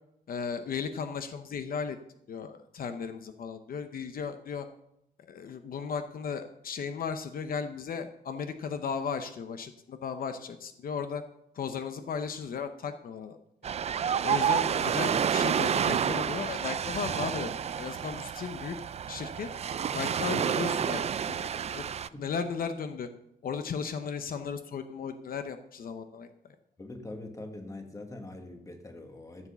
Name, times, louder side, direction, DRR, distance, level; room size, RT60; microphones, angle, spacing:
voice 1, 0.3-2.0 2.3-4.7 5.2-11.2 11.5-13.4 14.2-17.5 17.8-18.8 19.1-19.5 19.9-21.8 22.2-23.1 23.4-26.5, left 6 dB, 65° left, 8 dB, 0.8 m, -36 dB
Ocean, 13.6-22.1, right 8 dB, 40° right, 0.4 m, -29 dB
voice 2, 26.8-29.5, left 2 dB, 20° left, 5 dB, 1.5 m, -43 dB
14.0 x 7.3 x 6.9 m, 0.80 s
wide cardioid pair, 170°, 16 cm